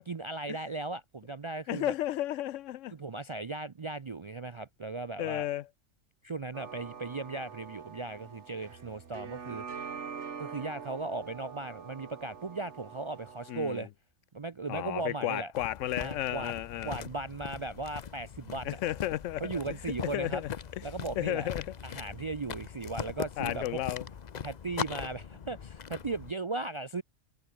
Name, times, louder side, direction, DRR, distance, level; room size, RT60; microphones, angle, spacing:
voice 1, 0.1-1.9 2.9-5.5 6.2-9.6 10.4-13.9 14.3-15.5 16.0-16.5 16.8-18.8 19.4-20.4 20.8-21.5 21.8-23.8 24.4-27.0, right 3 dB, 40° right, 0.4 m, -37 dB
voice 2, 1.7-2.9 5.2-5.7 13.5-13.9 14.7-17.0 18.6-19.5 20.1-20.8 21.2-21.7 23.4-24.0, left 13 dB, 80° left, 0.9 m, -33 dB
sound 1, 6.5-13.8, right 6 dB, 65° right, 1.7 m, -44 dB
sound 2, 15.5-26.3, left 7 dB, 40° left, 0.7 m, -41 dB
omnidirectional pair, 1.3 m